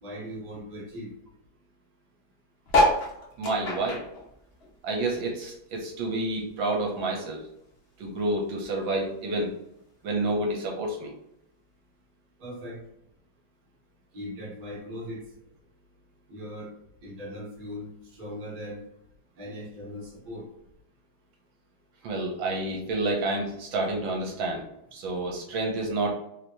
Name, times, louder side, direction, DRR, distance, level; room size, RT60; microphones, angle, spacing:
voice 1, 0.0-1.1 12.4-12.8 14.1-15.2 16.3-16.7 17.0-18.8 19.4-20.4, equal, 30° right, -5 dB, 1.0 m, -39 dB
sound 1, 2.7-5.4 5.8-7.3 7.8-7.9 8.0-8.1 8.3-8.7 9.5-9.6, left 1 dB, 60° left, 0.6 m, -27 dB
voice 2, 3.4-4.0 4.8-7.4 8.0-9.5 10.0-11.1 22.0-24.6 24.9-26.1, right 2 dB, 75° right, 1 dB, 1.4 m, -29 dB
3.3 x 2.8 x 2.6 m, 0.81 s
omnidirectional pair, 2.2 m